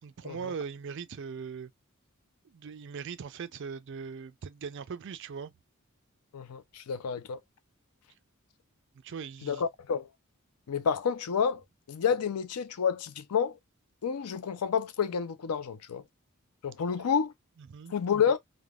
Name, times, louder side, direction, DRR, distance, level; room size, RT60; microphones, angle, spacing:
voice 1, 0.0-1.7 2.4-5.5 9.0-9.6 17.6-17.9, right 6 dB, 55° right, 0.4 m, -40 dB
voice 2, 6.3-7.4 9.4-10.1 10.7-11.6 11.9-13.6 14.0-16.0 16.6-17.3 17.9-18.4, left 7 dB, 90° left, 0.5 m, -29 dB
3.3 x 2.1 x 2.3 m
head